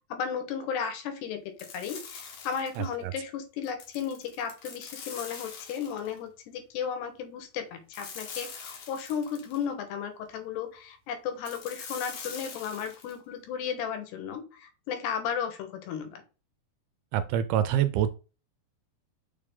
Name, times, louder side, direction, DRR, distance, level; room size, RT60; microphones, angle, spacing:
voice 1, 0.1-16.2, left 7 dB, 80° left, 6 dB, 3.2 m, -34 dB
sound 1, 1.6-2.9 3.6-6.2 7.9-9.6 11.4-13.2, left 6 dB, 60° left, 2.0 m, -43 dB
voice 2, 2.8-3.1 17.1-18.1, right 10 dB, 80° right, 11 dB, 2.3 m, -26 dB
6.9 x 4.8 x 3.7 m, 0.34 s
omnidirectional pair, 4.8 m